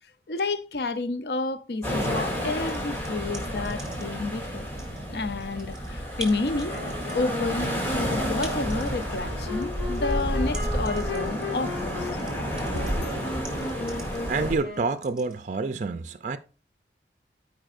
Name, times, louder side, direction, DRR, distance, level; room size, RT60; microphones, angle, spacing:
voice 1, 0.3-4.7 5.1-6.7 7.1-12.1 12.7-13.0, left 3 dB, 60° left, 0.6 m, -30 dB
sound 1, 1.8-14.6, equal, 10° left, 2.2 m, -31 dB
sound 2, 2.4-4.2 4.6-15.3, right 2 dB, 5° right, 1.6 m, -44 dB
Wind instrument woodwind instrument, 6.7-15.1, left 2 dB, 90° left, 2.1 m, -36 dB
voice 2, 14.2-16.4, right 4 dB, 40° right, 0.4 m, -28 dB
14.0 x 4.6 x 2.5 m
head